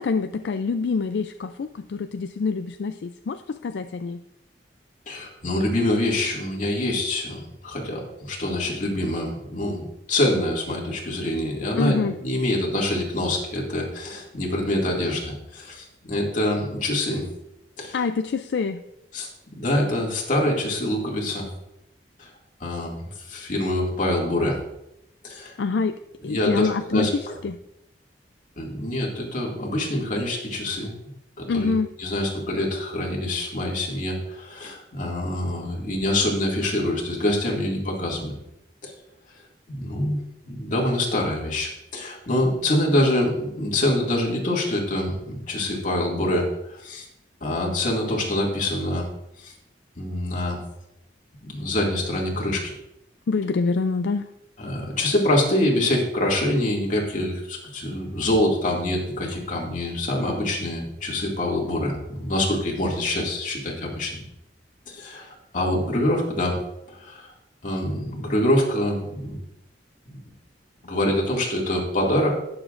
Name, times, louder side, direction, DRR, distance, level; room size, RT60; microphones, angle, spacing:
voice 1, 0.0-4.2 11.8-12.2 17.9-18.8 25.6-26.0 26.2-27.6 31.5-31.9 53.3-54.3, left 4 dB, 70° left, 9 dB, 0.4 m, -26 dB
voice 2, 5.1-9.8 10.1-17.2 17.8-18.0 19.1-19.3 19.6-21.5 22.2-22.3 22.6-24.6 25.2-25.5 26.3-27.1 28.6-30.9 31.4-31.7 32.0-38.3 38.8-38.9 39.7-40.2 40.5-47.0 47.4-49.1 49.4-49.5 50.0-50.6 51.4-52.7 54.6-64.2 64.9-66.6 66.9-67.3 67.6-69.4 70.1-70.2 70.8-72.3, left 1 dB, 45° left, -2 dB, 2.3 m, -25 dB
18.5 x 7.1 x 2.5 m, 0.85 s
head